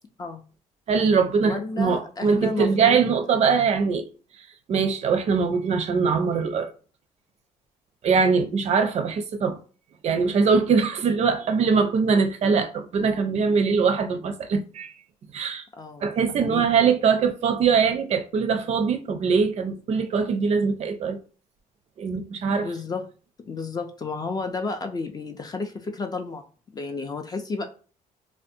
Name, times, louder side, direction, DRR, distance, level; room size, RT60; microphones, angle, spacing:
voice 1, 0.9-4.1 4.7-6.7 8.0-9.6 10.0-14.9 15.3-15.6 16.0-21.2 22.0-22.7, right 5 dB, 45° right, 0.4 m, -22 dB
voice 2, 1.4-3.0 15.7-16.7 22.6-23.0 23.4-26.4 26.7-27.6, left 3 dB, 25° left, 0.4 m, -32 dB
2.5 x 2.1 x 2.6 m
cardioid pair, 100°, 15 cm